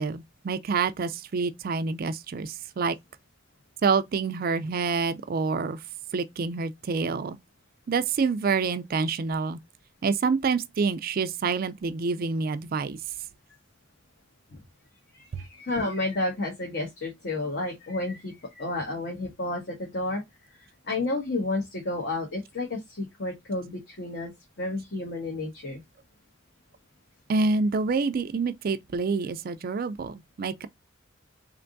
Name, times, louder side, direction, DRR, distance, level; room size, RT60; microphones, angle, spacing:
voice 1, 0.0-3.0 3.8-5.8 6.1-7.4 7.9-9.6 10.0-13.0 15.3-15.4 27.3-30.7, right 4 dB, 45° right, 0.4 m, -27 dB
voice 2, 15.1-20.2 20.8-24.3 24.6-25.8, left 2 dB, 55° left, 1.1 m, -31 dB
3.7 x 3.4 x 2.5 m
head